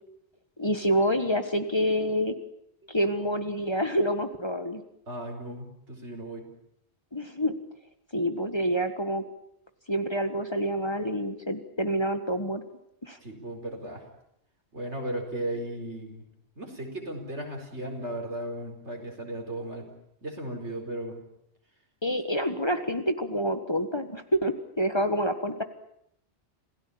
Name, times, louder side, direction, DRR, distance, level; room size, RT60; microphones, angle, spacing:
voice 1, 0.6-2.4 2.9-4.8 7.1-7.5 8.1-9.2 9.9-12.6 13.0-13.2 22.0-25.6, equal, 25° left, 9 dB, 1.5 m, -27 dB
voice 2, 5.1-6.5 13.2-14.0 14.7-16.2 16.5-19.9 20.2-21.2, right 1 dB, 80° right, 3 dB, 5.1 m, -36 dB
27.5 x 17.0 x 8.7 m, 0.75 s
omnidirectional pair, 1.2 m